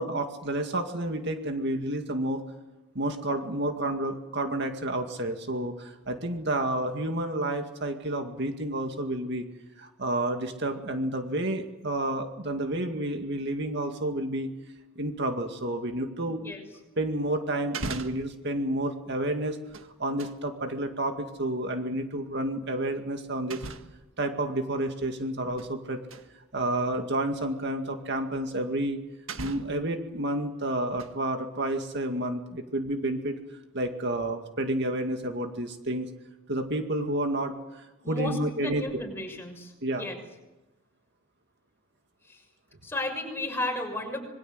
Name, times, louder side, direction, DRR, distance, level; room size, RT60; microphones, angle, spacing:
voice 1, 0.0-2.4 3.0-9.5 9.8-14.5 15.0-16.4 17.0-19.6 20.0-23.7 24.2-26.0 26.5-29.0 29.4-33.4 33.7-36.1 36.5-38.9 39.8-40.1, right 1 dB, 55° right, 5 dB, 2.2 m, -30 dB
sound 1, 17.1-17.2 17.6-18.4 19.5-20.4 22.0-22.2 23.5-24.1 25.2-25.8 26.1-26.3 27.2-27.3 28.7-28.8 29.3-29.9 30.7-31.3 31.7-31.8, right 3 dB, 80° right, 1.7 m, -39 dB
voice 2, 38.0-39.7 40.0-40.2 42.2-42.4 42.8-44.2, left 2 dB, 10° left, 2 dB, 6.3 m, -33 dB
27.0 x 22.0 x 8.0 m, 1.0 s
head